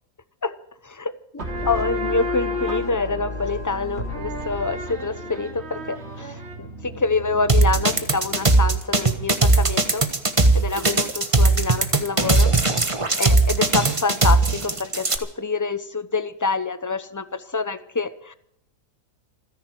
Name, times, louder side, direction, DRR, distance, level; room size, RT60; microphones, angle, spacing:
voice 1, 0.8-10.0 10.5-12.5 13.2-18.3, left 4 dB, 20° left, 13 dB, 0.4 m, -26 dB
sound 1, 1.4-8.7, left 1 dB, 40° right, 3.4 m, -31 dB
sound 2, 7.5-15.2, right 2 dB, 20° right, 1.3 m, -18 dB
28.0 x 10.5 x 4.6 m, 0.72 s
omnidirectional pair, 1.7 m